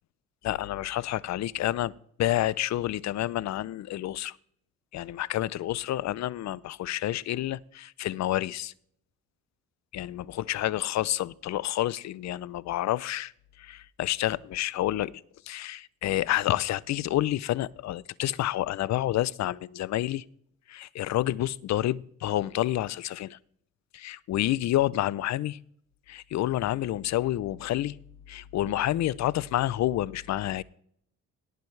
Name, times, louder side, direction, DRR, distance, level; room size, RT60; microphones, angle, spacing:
voice 1, 0.4-1.9 2.2-4.4 4.9-8.7 9.9-13.3 13.6-15.1 15.5-20.2 20.7-23.4 23.9-25.6 26.1-28.0 28.3-30.6, left 14 dB, 65° left, 0.5 m, -29 dB
18.0 x 9.1 x 3.3 m
cardioid pair, 90°, 30 cm